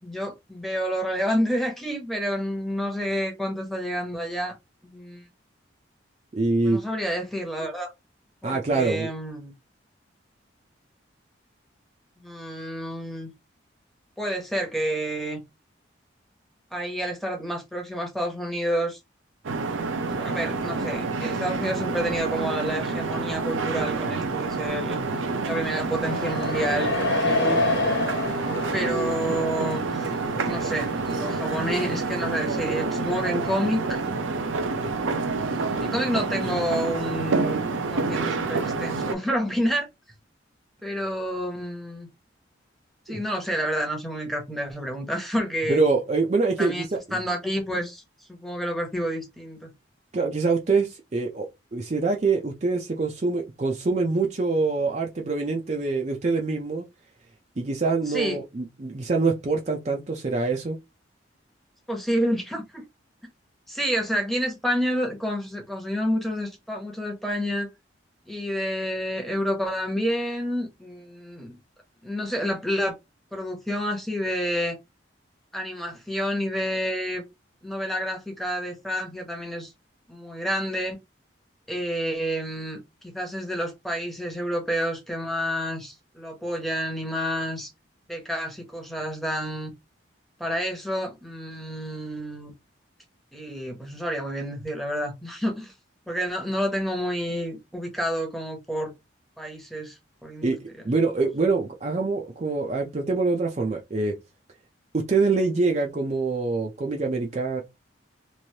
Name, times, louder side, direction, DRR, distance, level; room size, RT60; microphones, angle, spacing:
voice 1, 0.0-4.6 4.8-5.2 6.6-7.9 8.4-9.5 12.2-13.3 14.2-15.4 16.7-19.0 20.1-25.0 25.5-27.6 28.7-34.0 35.3-39.9 40.8-42.1 43.1-45.8 46.6-46.8 47.1-48.0 48.3-49.7 58.1-58.4 61.9-62.8 63.7-67.7 68.3-71.6 72.0-72.9 73.3-74.8 75.5-77.2 77.6-79.7 80.1-81.0 81.7-82.8 83.0-87.7 88.1-89.7 90.4-92.5 93.3-95.7 96.1-98.9 99.4-100.5, equal, ahead, 0.8 m, -29 dB
voice 2, 6.3-6.8 8.4-9.1 43.1-43.2 45.7-47.0 50.1-56.8 57.6-60.8 100.4-104.2 104.9-107.6, right 3 dB, 35° right, 0.5 m, -25 dB
sound 1, 19.4-39.1, right 3 dB, 85° right, 0.6 m, -28 dB
sound 2, 26.1-31.7, left 2 dB, 65° left, 0.9 m, -29 dB
3.1 x 2.6 x 2.7 m
head